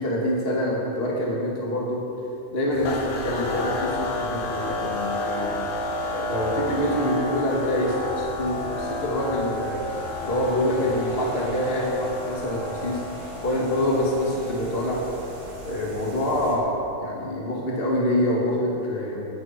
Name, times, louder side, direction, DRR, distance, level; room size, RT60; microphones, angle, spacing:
voice 1, 0.0-2.0 2.5-5.5 6.1-9.8 10.2-13.0 13.4-15.0 15.6-19.3, left 1 dB, 25° left, -3 dB, 1.4 m, -26 dB
sound 1, 2.7-16.6, right 2 dB, 55° right, 3.6 m, -41 dB
sound 2, 2.8-16.2, left 2 dB, 85° left, 1.4 m, -32 dB
19.0 x 11.5 x 4.6 m, 2.8 s
omnidirectional pair, 4.9 m